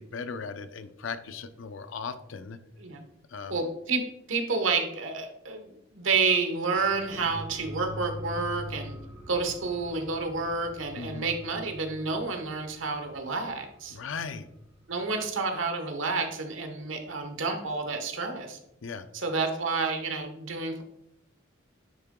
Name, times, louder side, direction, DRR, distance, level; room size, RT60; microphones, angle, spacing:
voice 1, 0.0-2.6 3.3-3.6 11.0-11.3 13.9-14.5 18.8-19.1, left 5 dB, 80° left, 11 dB, 0.5 m, -37 dB
voice 2, 3.5-4.0 4.3-8.9 9.3-14.0 14.9-18.6 19.1-20.8, right 4 dB, 80° right, 5 dB, 1.1 m, -29 dB
sound 1, 6.7-15.8 16.1-16.2, left 1 dB, 30° right, 1.5 m, -45 dB
sound 2, 7.1-8.5, right 1 dB, 15° right, 0.8 m, -46 dB
10.0 x 3.8 x 3.7 m, 0.82 s
head